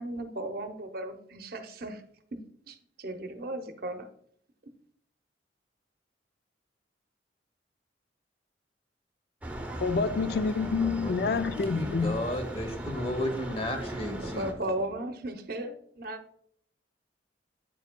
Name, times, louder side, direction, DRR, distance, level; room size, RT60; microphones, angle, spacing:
voice 1, 0.0-2.0 2.3-4.1 14.3-16.2, right 1 dB, 55° right, 0.7 m, -36 dB
sound 1, 9.4-14.5, right 1 dB, 10° right, 0.8 m, -38 dB
voice 2, 9.8-12.2, left 4 dB, 55° left, 0.3 m, -27 dB
voice 3, 10.8-14.5, left 1 dB, 30° left, 1.0 m, -34 dB
9.0 x 6.9 x 2.2 m
head